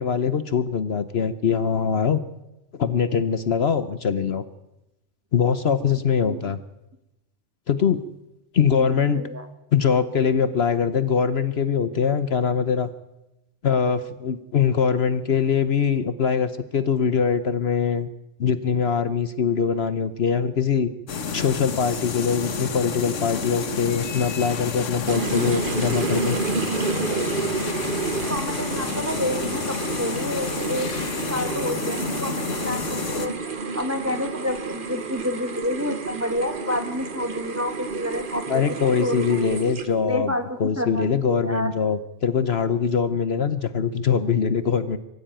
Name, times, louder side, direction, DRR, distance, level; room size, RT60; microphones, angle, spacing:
voice 1, 0.0-2.2 2.7-4.4 5.3-6.6 7.7-8.0 8.5-9.2 9.7-12.9 13.6-18.1 18.4-20.9 21.3-26.4 38.5-40.3 40.6-45.0, left 6 dB, 55° left, 13 dB, 1.1 m, -22 dB
voice 2, 8.7-9.5 28.3-30.9 31.3-33.3 33.7-38.6 39.0-39.6 40.1-41.7, left 1 dB, 10° right, 7 dB, 1.6 m, -29 dB
sound 1, 21.1-33.3, left 6 dB, 75° left, 1.6 m, -30 dB
sound 2, 25.1-40.1, right 4 dB, 45° right, 1.4 m, -30 dB
23.5 x 15.5 x 9.0 m, 0.95 s
omnidirectional pair, 1.3 m